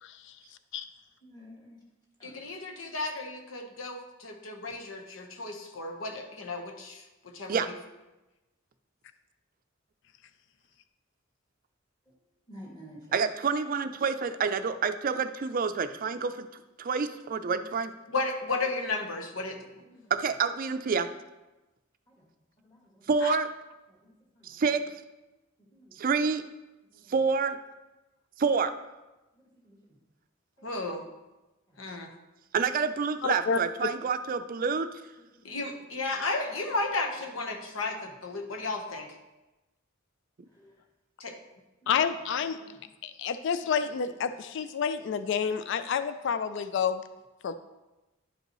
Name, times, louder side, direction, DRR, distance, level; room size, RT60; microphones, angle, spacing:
voice 1, 0.0-0.4 0.7-0.9 23.2-23.4 33.2-33.6 41.9-42.6 43.0-47.0 47.4-47.5, left 6 dB, 65° left, 11 dB, 0.4 m, -29 dB
voice 2, 1.2-1.8 2.2-2.3 12.5-13.0 19.9-20.0 22.6-23.0 24.4-24.6 25.7-26.0 29.7-29.8 35.4-35.6 40.6-40.7, equal, 20° left, -4 dB, 2.2 m, -49 dB
voice 3, 2.2-7.6 18.1-19.7 30.6-31.0 31.8-32.1 35.4-39.2 41.2-41.3, left 3 dB, 85° left, 3 dB, 1.1 m, -34 dB
voice 4, 13.1-16.5 16.8-17.9 20.1-21.1 23.1-23.5 24.4-24.9 26.0-26.4 27.1-27.6 28.4-28.7 32.5-34.9, right 5 dB, 45° right, 10 dB, 0.4 m, -28 dB
11.0 x 5.4 x 3.0 m, 1.1 s
head